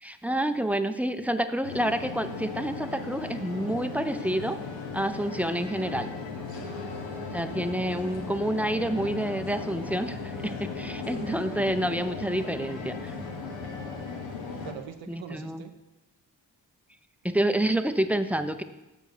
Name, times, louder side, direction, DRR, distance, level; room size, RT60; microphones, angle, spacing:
voice 1, 0.0-4.6 4.9-6.1 7.3-13.1 15.1-15.6 17.2-18.6, right 1 dB, 5° right, 9 dB, 0.5 m, -28 dB
sound 1, 1.6-14.7, left 4 dB, 85° left, 1.2 m, -37 dB
voice 2, 6.5-7.0 13.3-13.4 14.1-14.2 14.5-15.7, right 7 dB, 85° right, 7 dB, 0.8 m, -44 dB
6.5 x 5.0 x 6.6 m, 1.0 s
supercardioid pair, 45°, 44 cm